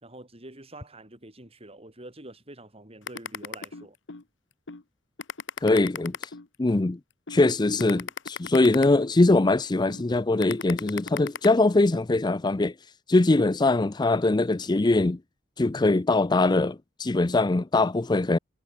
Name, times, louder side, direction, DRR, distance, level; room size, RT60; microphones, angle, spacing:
voice 1, 0.0-4.0, right 1 dB, 30° right, 5.1 m, -46 dB
sound 1, 3.1-4.2 4.7-4.8 5.2-6.8 7.3-7.4 7.8-9.4 9.9-10.0 10.4-11.5, left 6 dB, 75° left, 1.2 m, -36 dB
voice 2, 5.6-6.3 6.6-7.0 7.3-12.7 13.1-15.2 15.6-18.4, left 2 dB, 25° left, 0.5 m, -22 dB
head